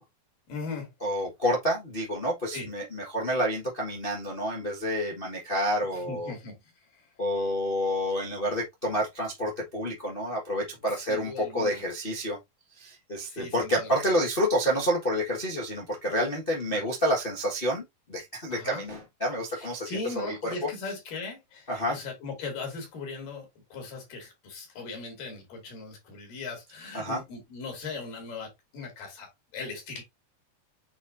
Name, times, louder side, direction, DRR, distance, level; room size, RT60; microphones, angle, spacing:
voice 1, 0.5-0.9 2.5-2.7 5.9-6.6 6.9-7.0 11.1-11.8 13.3-13.9 16.7-16.8 18.5-18.9 19.6-30.0, left 4 dB, 75° left, 4.2 m, -39 dB
voice 2, 1.0-6.3 7.2-12.4 12.8-17.8 18.1-20.5 21.7-22.0 26.9-27.2, equal, 55° left, 0.6 m, -29 dB
8.3 x 4.3 x 2.6 m
omnidirectional pair, 3.8 m